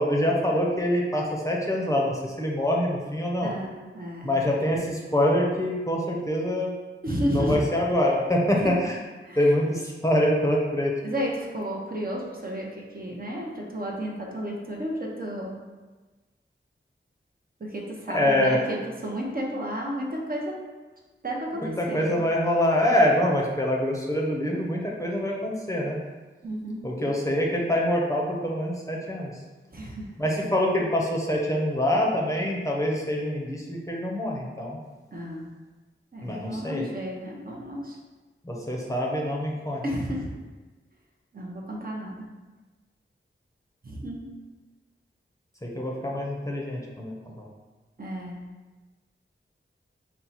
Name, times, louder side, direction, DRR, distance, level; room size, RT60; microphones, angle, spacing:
voice 1, 0.0-3.5 4.2-6.7 7.3-9.0 9.3-10.9 18.1-18.6 21.5-26.0 26.8-29.4 30.2-34.8 36.2-36.9 38.4-39.8 45.6-47.5, left 1 dB, 15° left, -3 dB, 0.6 m, -25 dB
voice 2, 3.4-4.4 7.0-7.7 8.6-8.8 9.2-9.5 11.0-12.7 12.9-15.5 17.6-20.6 21.2-22.2 26.4-26.8 29.7-30.1 35.1-35.5 36.1-38.0 39.8-40.3 41.3-42.3 43.8-44.3 48.0-48.4, equal, 45° right, -2 dB, 0.7 m, -32 dB
4.4 x 2.1 x 4.0 m, 1.3 s
wide cardioid pair, 75°, 21 cm